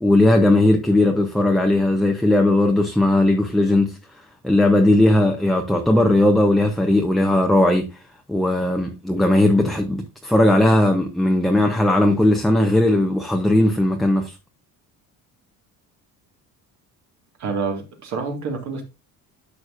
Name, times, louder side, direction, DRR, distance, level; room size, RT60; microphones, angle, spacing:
voice 1, 0.0-4.0 4.4-8.0 8.3-14.3, left 1 dB, ahead, 0.7 m, -18 dB
voice 2, 17.4-18.8, right 4 dB, 55° right, 1.9 m, -27 dB
11.0 x 6.5 x 2.5 m
cardioid pair, 145°, 34 cm